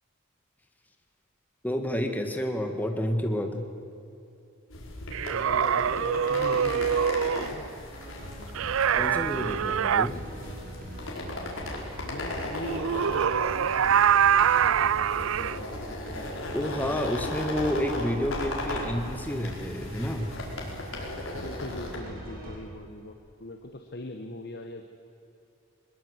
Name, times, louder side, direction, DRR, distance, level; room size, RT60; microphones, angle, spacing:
voice 1, 1.6-3.6 8.9-10.2 16.5-20.3, equal, 10° left, 4 dB, 1.8 m, -29 dB
sound 1, 4.7-22.0, left 2 dB, 70° left, 4.9 m, -37 dB
sound 2, 5.1-7.5 8.5-10.1 12.6-15.6, right 8 dB, 70° right, 0.4 m, -24 dB
voice 2, 5.3-7.7 12.0-15.7 21.3-24.8, left 2 dB, 50° left, 5 dB, 1.4 m, -41 dB
sound 3, 7.9-22.6, equal, 45° right, 6.3 m, -41 dB
22.0 x 21.5 x 8.2 m, 2.8 s
head